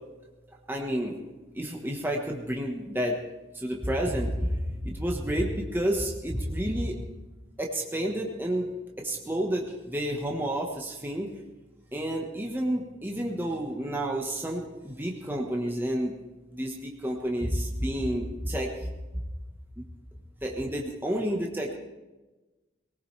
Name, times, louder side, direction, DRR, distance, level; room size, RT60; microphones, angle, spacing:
voice 1, 0.7-1.1 1.5-3.2 3.5-4.5 4.8-7.0 7.6-8.7 9.0-11.3 11.9-16.1 16.5-18.9 19.8-19.9 20.4-21.7, right 1 dB, 10° right, 0 dB, 1.3 m, -30 dB
19.5 x 18.5 x 3.4 m, 1.1 s
head